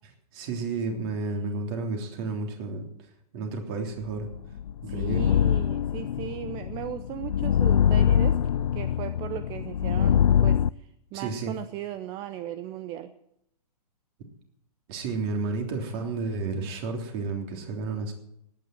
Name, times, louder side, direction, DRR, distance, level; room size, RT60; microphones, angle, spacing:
voice 1, 0.3-2.8 3.3-4.3 4.8-5.3 11.1-11.5 14.9-18.1, right 3 dB, 40° right, 4 dB, 3.3 m, -31 dB
sound 1, 4.2-10.7, left 8 dB, 85° left, 0.5 m, -24 dB
voice 2, 4.9-8.4 8.7-13.1, right 12 dB, 20° right, 12 dB, 0.6 m, -37 dB
17.5 x 9.6 x 7.6 m, 0.77 s
hypercardioid pair, 150°, 20 cm